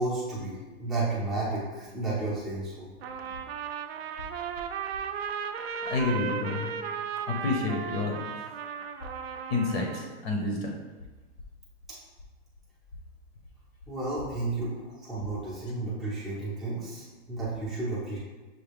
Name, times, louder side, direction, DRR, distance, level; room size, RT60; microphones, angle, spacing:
voice 1, 0.0-2.9 13.9-18.2, right 2 dB, ahead, -10 dB, 0.5 m, -32 dB
Trumpet, 3.0-10.1, right 7 dB, 65° right, 0.4 m, -35 dB
voice 2, 5.9-6.7 7.3-8.2 9.5-10.7, left 3 dB, 65° left, 1 dB, 0.8 m, -29 dB
6.2 x 2.2 x 3.4 m, 1.3 s
supercardioid pair, 165°, 33 cm